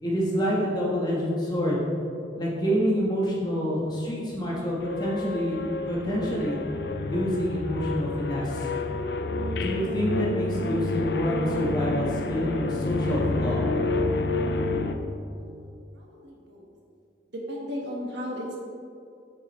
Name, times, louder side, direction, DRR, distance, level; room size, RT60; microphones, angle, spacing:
voice 1, 0.0-1.8 2.4-5.6 5.9-6.6 7.0-8.7 9.5-13.6, equal, 25° left, -5 dB, 1.4 m, -27 dB
sound 1, 4.8-14.9, left 2 dB, 65° left, 0.5 m, -29 dB
voice 2, 15.3-15.7 15.9-16.7 17.3-18.6, equal, 75° right, -2 dB, 1.5 m, -36 dB
7.8 x 7.4 x 3.2 m, 2.5 s
head